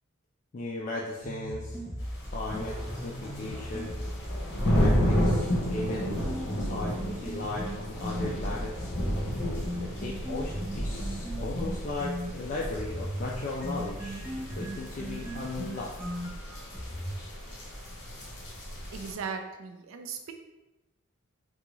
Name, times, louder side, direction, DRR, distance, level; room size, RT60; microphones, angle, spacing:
voice 1, 0.5-1.8 2.3-4.0 4.8-6.2 6.5-8.9 9.8-16.2, left 2 dB, 40° left, -3 dB, 0.3 m, -37 dB
sound 1, 1.2-8.3 8.7-12.3 12.7-17.2, equal, 10° right, 0.7 m, -37 dB
sound 2, 2.0-19.1, equal, 55° left, 1.0 m, -32 dB
voice 2, 18.9-20.3, right 5 dB, 75° right, 5 dB, 0.4 m, -37 dB
3.6 x 2.3 x 3.0 m, 1.0 s
head